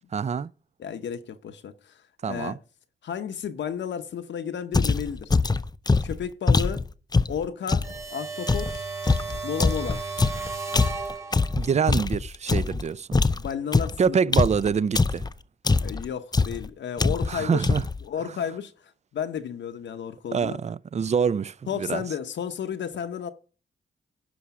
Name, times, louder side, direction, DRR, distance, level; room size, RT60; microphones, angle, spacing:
voice 1, 0.1-0.5 2.2-2.6 11.6-13.2 14.0-15.2 17.3-17.8 20.3-22.0, right 6 dB, 35° right, 0.4 m, -25 dB
voice 2, 0.8-2.6 3.0-5.3 6.0-6.9 7.3-7.8 8.1-8.8 9.4-10.0 13.3-14.4 15.8-17.7 18.0-18.7 19.1-20.6 21.7-23.3, left 8 dB, 75° left, 0.8 m, -32 dB
sound 1, 4.7-8.0 8.5-12.8 13.1-15.3 15.7-16.1 16.3-16.7 17.0-17.4 17.6-18.0, left 3 dB, 20° left, 0.5 m, -23 dB
sound 2, 7.8-11.7, right 4 dB, 15° right, 2.2 m, -34 dB
11.0 x 4.9 x 5.9 m
cardioid pair, 70°, 19 cm